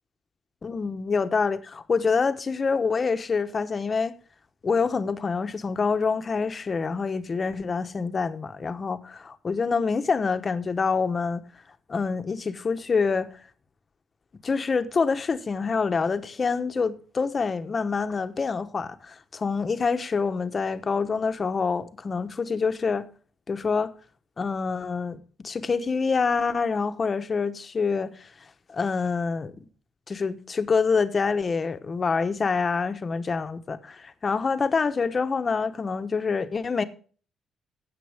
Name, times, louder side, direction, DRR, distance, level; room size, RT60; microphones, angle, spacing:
voice 1, 0.6-4.1 4.6-11.4 11.9-13.3 14.4-23.1 23.5-23.9 24.4-28.3 28.7-29.7 30.1-36.8, left 5 dB, 30° left, 1.0 m, -26 dB
16.0 x 7.6 x 3.5 m
cardioid pair, 130°, 0 cm